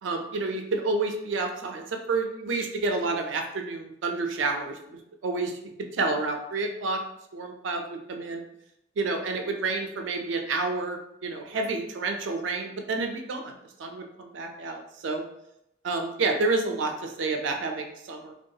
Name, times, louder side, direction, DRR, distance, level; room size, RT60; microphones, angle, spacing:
voice 1, 0.0-5.6 5.9-7.0 7.3-8.4 9.0-15.3 15.8-18.3, right 3 dB, 85° right, 4 dB, 0.4 m, -29 dB
2.3 x 2.3 x 2.7 m, 0.82 s
head